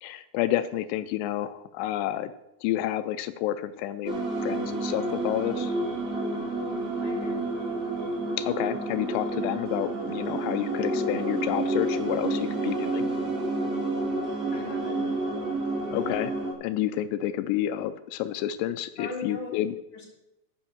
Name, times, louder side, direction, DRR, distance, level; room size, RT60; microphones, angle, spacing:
voice 1, 0.0-2.3 2.6-5.7 8.4-13.1 15.9-16.3 16.6-19.8, left 12 dB, 85° left, 12 dB, 2.7 m, -29 dB
sound 1, 4.0-16.5, right 2 dB, 35° right, 2.0 m, -29 dB
voice 2, 7.0-7.5 14.5-15.0 19.0-19.5 19.9-20.1, left 3 dB, 30° left, -4 dB, 3.3 m, -38 dB
13.0 x 5.3 x 7.1 m, 0.88 s
omnidirectional pair, 4.8 m